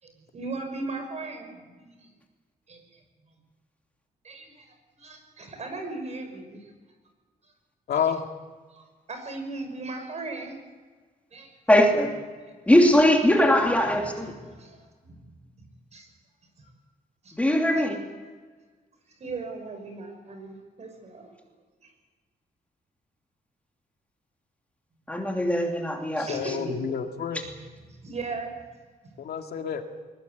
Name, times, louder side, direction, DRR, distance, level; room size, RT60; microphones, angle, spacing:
voice 1, 0.0-2.1 2.7-2.8 3.3-3.4 4.2-4.7 5.0-6.6 8.7-10.5 11.3-11.5 14.3-14.4 14.6-14.8 15.1-15.2 15.9-16.1 16.6-16.7 17.2-17.3 19.1-21.3 21.8-21.9 26.3-26.8 27.9-28.5 29.0-29.1, right 3 dB, 45° right, 5 dB, 5.9 m, -37 dB
voice 2, 7.9-8.2 26.2-27.4 29.2-29.8, left 8 dB, 80° left, 4 dB, 2.3 m, -29 dB
voice 3, 11.7-12.1 12.7-14.3 17.4-18.0 25.1-26.4, left 1 dB, 10° left, 1 dB, 2.9 m, -20 dB
22.0 x 20.5 x 8.3 m, 1.4 s
wide cardioid pair, 165°, 16 cm